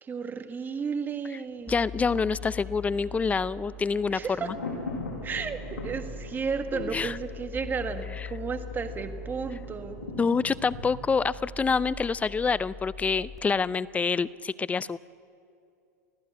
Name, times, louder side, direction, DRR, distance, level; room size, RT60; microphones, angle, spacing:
voice 1, 0.0-1.7 4.1-4.5 5.2-10.0, right 5 dB, 20° right, 8 dB, 1.5 m, -33 dB
Thunder, 1.5-12.4 12.7-12.8, left 3 dB, 80° left, 7.9 m, -42 dB
voice 2, 1.7-4.5 6.7-7.2 8.2-8.3 10.2-15.0, left 5 dB, 15° left, 19 dB, 0.5 m, -27 dB
sound 1, 1.7-13.4, left 3 dB, ahead, 2.5 m, -42 dB
23.5 x 15.5 x 8.7 m, 2.6 s
hypercardioid pair, 110°, 9 cm